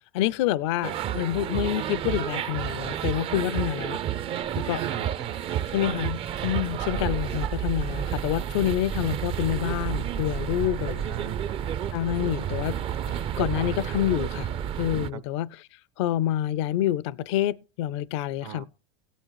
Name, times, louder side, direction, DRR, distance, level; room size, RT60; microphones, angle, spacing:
voice 1, 0.1-4.0 4.5-4.8 5.7-11.1 11.9-12.8 13.1-14.5 14.8-15.7 16.0-18.6, left 12 dB, 70° left, 0.5 m, -27 dB
sound 1, 0.8-15.1, right 9 dB, 40° right, 0.5 m, -30 dB
voice 2, 4.8-5.7 10.6-11.7 12.2-12.3 15.1-15.2 18.4-18.7, right 10 dB, 70° right, 1.4 m, -39 dB
16.5 x 9.1 x 3.1 m
supercardioid pair, 115°, 15 cm